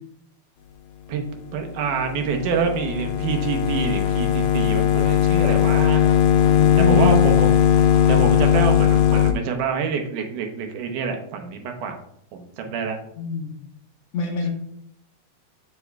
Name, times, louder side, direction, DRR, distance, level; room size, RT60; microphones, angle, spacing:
voice 1, 1.5-6.0 6.9-7.5 8.1-12.0 12.3-13.0, right 6 dB, 85° right, 4 dB, 2.5 m, -26 dB
sound 1, 1.6-9.3, left 9 dB, 85° left, 2.1 m, -19 dB
voice 2, 6.3-7.1 12.7-12.8 13.2-13.6 14.1-14.5, left 4 dB, 65° left, 0 dB, 2.1 m, -25 dB
8.2 x 6.8 x 2.3 m, 0.71 s
omnidirectional pair, 3.6 m